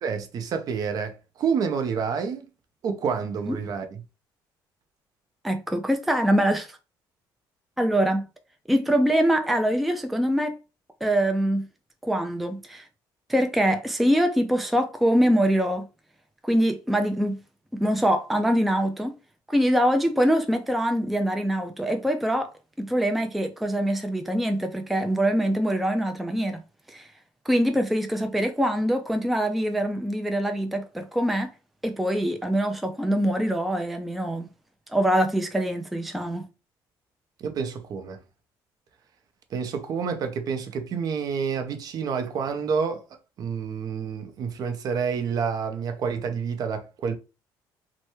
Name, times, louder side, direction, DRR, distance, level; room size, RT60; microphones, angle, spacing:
voice 1, 0.0-2.5 2.8-4.0 37.4-38.2 39.5-43.0 43.4-47.1, right 6 dB, 50° right, 0.6 m, -28 dB
voice 2, 5.4-6.8 7.8-8.3 8.7-10.6 11.0-11.7 12.0-12.8 13.3-15.8 16.4-17.4 17.7-19.1 19.5-22.5 22.8-26.6 26.9-27.1 27.5-31.5 31.8-34.5 34.9-36.4, equal, ahead, 0.3 m, -24 dB
3.2 x 2.1 x 3.0 m
cardioid pair, 130°, 8 cm